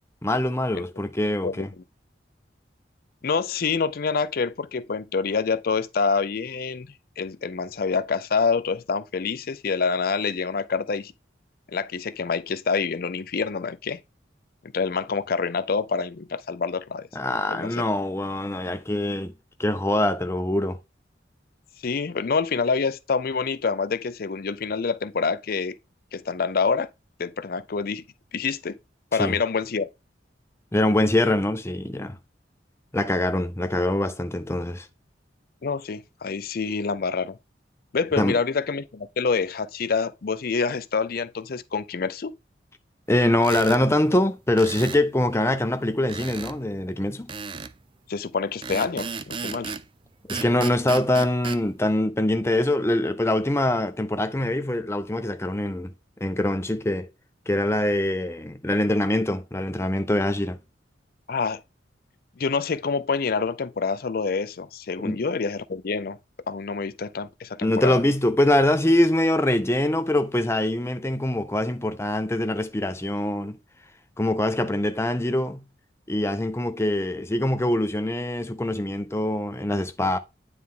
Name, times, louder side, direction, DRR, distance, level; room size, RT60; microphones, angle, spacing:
voice 1, 0.2-1.7 17.1-19.3 19.6-20.8 29.1-29.4 30.7-32.2 32.9-34.9 38.2-38.4 43.1-47.3 50.3-55.9 56.2-57.1 57.5-60.6 65.0-65.2 67.6-73.6 74.2-75.6 76.1-80.2, left 1 dB, 15° left, 0.6 m, -24 dB
voice 2, 3.2-6.9 7.2-11.1 11.7-14.0 14.7-17.1 17.5-17.8 21.8-25.8 26.1-26.9 27.2-28.0 28.3-28.8 29.1-29.9 35.6-37.4 37.9-42.3 48.1-49.7 61.3-61.6 62.4-66.2 66.5-68.0, left 5 dB, 50° left, 0.5 m, -26 dB
sound 1, 43.4-43.8 44.6-45.0 46.1-46.6 47.3-47.8 48.6-49.9 50.3-51.6, right 5 dB, 25° right, 0.4 m, -34 dB
9.4 x 3.5 x 3.7 m
head